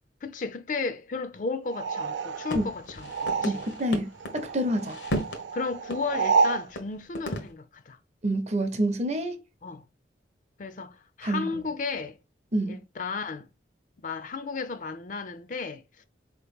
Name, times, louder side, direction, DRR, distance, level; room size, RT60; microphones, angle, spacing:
voice 1, 0.2-3.6 5.5-8.0 9.6-9.9 10.6-12.2 12.7-13.5 14.0-16.0, left 4 dB, 45° left, 0.4 m, -34 dB
sound 1, 1.7-3.9 4.2-6.7, right 5 dB, 85° right, 0.4 m, -29 dB
sound 2, 2.5-4.4 4.7-5.4 5.9-6.0 6.3-6.4 6.8-6.9 7.1-7.5, equal, 80° left, 0.9 m, -34 dB
voice 2, 3.4-5.0 8.2-9.4 11.2-11.5 12.5-12.7, right 1 dB, 35° right, 0.6 m, -27 dB
4.2 x 2.9 x 3.4 m
head